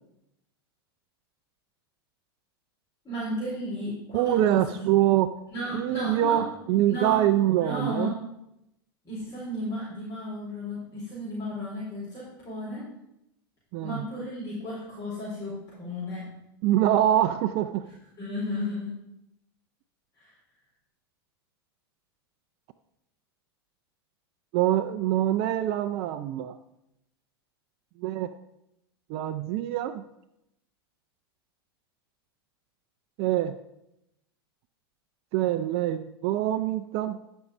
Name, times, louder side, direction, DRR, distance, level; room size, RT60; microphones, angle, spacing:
voice 1, 3.0-4.8 5.5-6.4 6.9-7.2 7.5-8.2 9.0-12.9 13.8-16.3 17.8-18.9 20.2-20.3, left 1 dB, 25° left, -8 dB, 4.4 m, -34 dB
voice 2, 4.1-5.3 5.7-8.2 13.7-14.0 16.6-17.9 24.5-26.6 28.0-28.3 29.1-30.0 33.2-33.6 35.3-37.2, right 12 dB, 50° right, 8 dB, 0.5 m, -24 dB
12.5 x 5.5 x 5.0 m, 0.84 s
hypercardioid pair, 105°, 13 cm